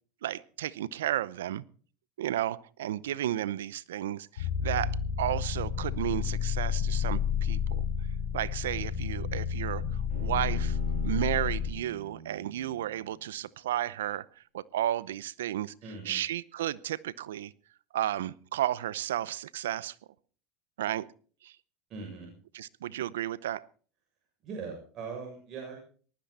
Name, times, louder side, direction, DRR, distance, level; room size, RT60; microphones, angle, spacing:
voice 1, 0.2-1.6 2.2-7.9 8.3-15.7 16.0-17.5 17.9-19.9 20.8-21.1 21.4-21.5 22.5-23.6, right 12 dB, 90° right, 21 dB, 0.7 m, -33 dB
sound 1, 4.4-11.7, left 8 dB, 90° left, 4.4 m, -30 dB
Bowed string instrument, 10.1-13.4, right 6 dB, 70° right, 8.0 m, -44 dB
voice 2, 15.8-16.2 21.9-22.3 24.4-25.8, right 5 dB, 50° right, 1 dB, 7.1 m, -40 dB
19.5 x 13.5 x 4.2 m, 0.43 s
hypercardioid pair, 95°, 0 cm